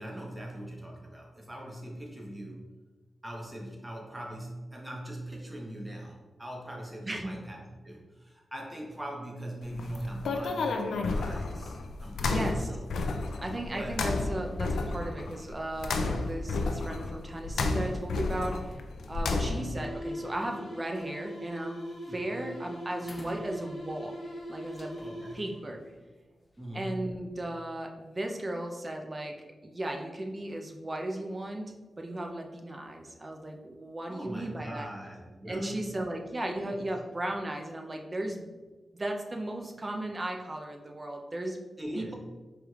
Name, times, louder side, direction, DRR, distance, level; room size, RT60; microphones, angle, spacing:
voice 1, 0.0-2.7 3.2-12.9 13.7-14.0 19.3-19.7 22.1-22.4 25.0-25.4 26.6-27.0 34.1-36.0 36.7-36.9 41.8-42.1, right 1 dB, 15° right, -2 dB, 1.0 m, -41 dB
sound 1, 9.6-19.8, left 3 dB, 90° left, 0.3 m, -32 dB
voice 2, 12.2-12.7 13.4-18.6 19.1-21.8 22.1-24.2 24.5-25.8 26.7-29.3 29.6-34.9 35.5-38.5 38.9-41.6 41.9-42.1, right 1 dB, 30° right, 2 dB, 0.5 m, -36 dB
sound 2, 19.7-25.7, equal, 70° left, 1.1 m, -41 dB
sound 3, 21.4-21.6 21.9-22.2 22.5-22.6 23.0-24.1 24.7-26.8, equal, 25° left, 0.6 m, -48 dB
5.0 x 3.2 x 2.4 m, 1.3 s
cardioid pair, 65°, 0 cm